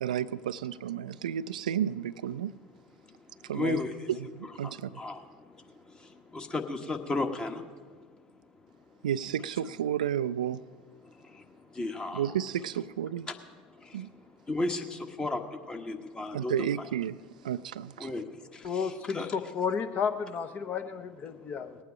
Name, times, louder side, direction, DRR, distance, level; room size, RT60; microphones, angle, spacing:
voice 1, 0.0-2.5 3.4-3.8 4.1-5.0 9.0-10.6 12.1-13.3 13.9-14.1 16.3-17.2 17.4-18.1, right 10 dB, 75° right, 15 dB, 0.3 m, -32 dB
voice 2, 3.5-4.1 4.4-5.6 6.0-8.0 11.0-12.4 13.8-16.6 18.0-19.3, left 2 dB, 20° left, 6 dB, 1.3 m, -35 dB
voice 3, 18.6-21.8, left 6 dB, 40° left, 9 dB, 1.0 m, -32 dB
19.0 x 9.0 x 5.1 m, 1.5 s
figure-of-eight pair, 75°, 4 cm